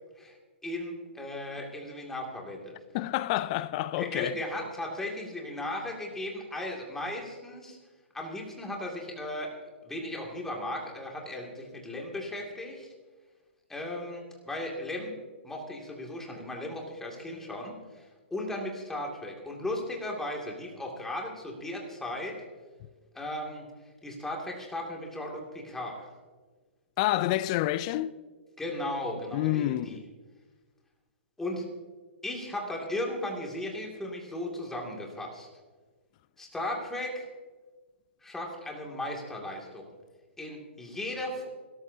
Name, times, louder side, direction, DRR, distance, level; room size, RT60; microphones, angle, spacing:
voice 1, 0.6-2.7 4.0-7.8 8.1-9.5 9.8-12.9 13.7-15.1 15.4-18.0 18.3-22.4 23.1-23.7 24.0-26.1 28.6-30.0 31.4-31.6 32.2-35.5 36.4-37.3 38.2-39.8 40.4-41.5, left 1 dB, 5° left, 2.4 m, -36 dB
voice 2, 2.9-4.3 27.0-28.1 29.3-30.0, left 15 dB, 35° left, 0.4 m, -28 dB
26.0 x 13.5 x 2.8 m
hypercardioid pair, 145°, 6 cm